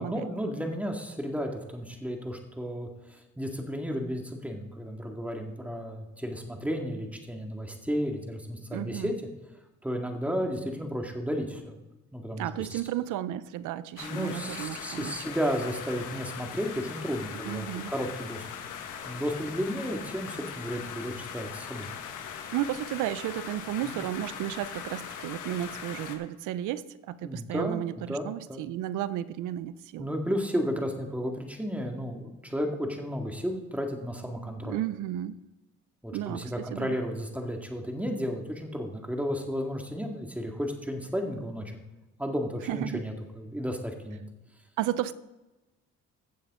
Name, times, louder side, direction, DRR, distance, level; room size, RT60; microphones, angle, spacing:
voice 1, 0.0-9.1 9.8-11.8 12.1-12.8 14.0-18.4 19.1-21.9 23.8-24.0 27.2-28.6 30.0-34.8 36.0-41.8 42.2-44.2, equal, 5° right, 2 dB, 1.9 m, -33 dB
voice 2, 8.7-9.1 12.4-15.1 17.4-17.9 22.5-30.1 34.6-35.4 36.1-36.9 42.7-43.0 44.8-45.1, right 12 dB, 90° right, 16 dB, 0.6 m, -33 dB
sound 1, 14.0-26.2, left 8 dB, 85° left, 1.4 m, -40 dB
16.0 x 7.4 x 3.7 m, 1.0 s
cardioid pair, 90°, 30 cm